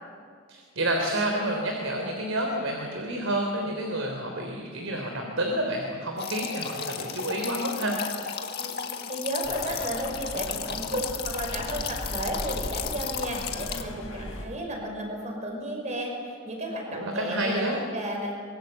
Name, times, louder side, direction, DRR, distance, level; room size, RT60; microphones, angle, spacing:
voice 1, 0.5-8.0 16.9-17.8, right 1 dB, 75° right, 2 dB, 3.6 m, -29 dB
sound 1, 6.2-13.8, left 7 dB, 50° left, 1.7 m, -34 dB
voice 2, 8.6-18.3, right 1 dB, 35° right, 1 dB, 5.8 m, -33 dB
sound 2, 9.4-14.5, left 1 dB, 90° left, 7.7 m, -38 dB
24.5 x 23.0 x 8.2 m, 2.1 s
head